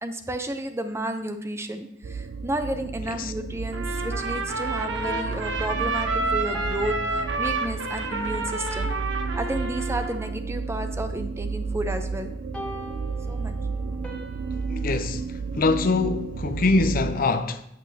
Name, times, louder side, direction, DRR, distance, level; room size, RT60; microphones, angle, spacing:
voice 1, 0.0-8.9 9.4-12.3 13.3-13.6, right 1 dB, 15° right, 0.6 m, -32 dB
sound 1, 2.0-17.1, right 4 dB, 60° right, 0.3 m, -32 dB
Trumpet, 3.7-10.3, right 3 dB, 90° right, 1.0 m, -29 dB
sound 2, 4.9-8.3 12.5-15.0, equal, 5° left, 1.4 m, -41 dB
voice 2, 14.7-17.6, left 3 dB, 50° left, 0.5 m, -24 dB
8.3 x 8.1 x 2.8 m
head